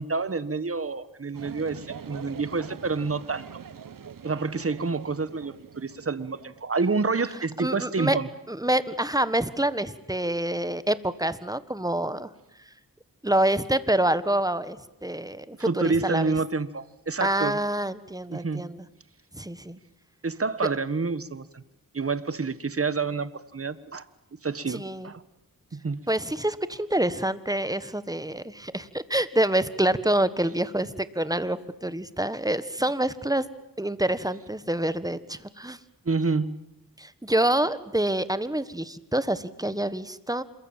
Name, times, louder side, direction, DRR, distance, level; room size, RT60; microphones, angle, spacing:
voice 1, 0.0-3.5 4.2-8.3 15.6-17.6 18.3-18.7 20.2-21.6 21.9-24.0 24.4-25.2 25.7-26.0 36.0-36.6, right 4 dB, 40° right, 14 dB, 1.4 m, -28 dB
sound 1, 1.3-6.6, right 7 dB, 65° right, 1.0 m, -44 dB
voice 2, 7.6-8.2 8.5-12.3 13.2-16.3 17.2-18.8 19.3-19.8 24.7-25.1 26.1-33.4 33.8-35.8 37.0-40.4, right 1 dB, 10° right, 14 dB, 1.4 m, -27 dB
27.5 x 22.5 x 9.0 m, 0.83 s
wide cardioid pair, 65°, 35 cm